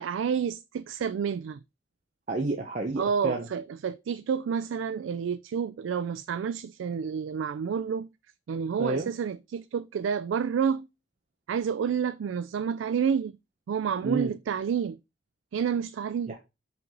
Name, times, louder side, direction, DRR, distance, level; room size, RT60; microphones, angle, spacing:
voice 1, 0.0-1.6 3.0-8.1 8.5-10.9 11.5-13.4 13.7-15.0 15.5-16.4, right 7 dB, 75° right, 0.3 m, -29 dB
voice 2, 2.3-3.5 8.8-9.1 14.0-14.3 16.3-16.4, right 2 dB, 40° right, 0.8 m, -30 dB
5.6 x 3.9 x 5.8 m
head